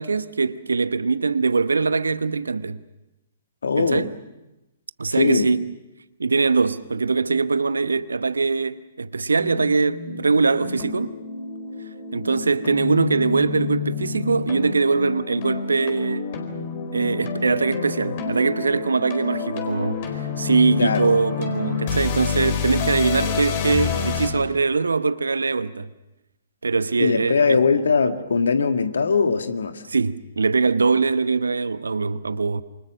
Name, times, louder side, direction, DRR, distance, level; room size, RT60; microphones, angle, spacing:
voice 1, 0.0-2.8 3.8-4.1 5.0-5.7 6.2-11.2 12.1-16.3 16.9-25.9 26.6-27.6 29.9-32.6, right 4 dB, 70° right, 1.0 m, -22 dB
voice 2, 3.6-4.1 5.2-5.5 20.8-21.1 27.0-29.8, left 5 dB, 65° left, 1.8 m, -20 dB
sound 1, 9.4-24.3, left 6 dB, 40° left, 4.5 m, -29 dB
28.0 x 25.5 x 6.4 m
figure-of-eight pair, 120°, 0 cm